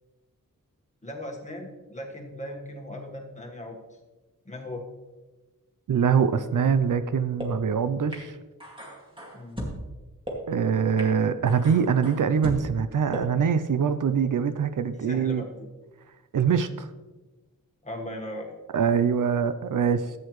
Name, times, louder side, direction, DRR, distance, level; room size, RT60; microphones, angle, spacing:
voice 1, 1.0-3.8 4.4-4.9 9.3-9.6 14.9-15.7 17.8-18.5, left 1 dB, 20° left, 1 dB, 1.5 m, -38 dB
voice 2, 5.9-8.3 10.5-15.4 16.3-16.9 18.7-20.1, right 7 dB, 70° right, 12 dB, 0.6 m, -24 dB
sound 1, 6.8-6.9 7.4-7.5 8.1-8.2 8.6-9.7 10.3-10.4 11.0-11.1 11.5-12.6 13.1-13.2, equal, 15° right, 2.2 m, -36 dB
13.0 x 8.6 x 3.1 m, 1.2 s
wide cardioid pair, 135°, 33 cm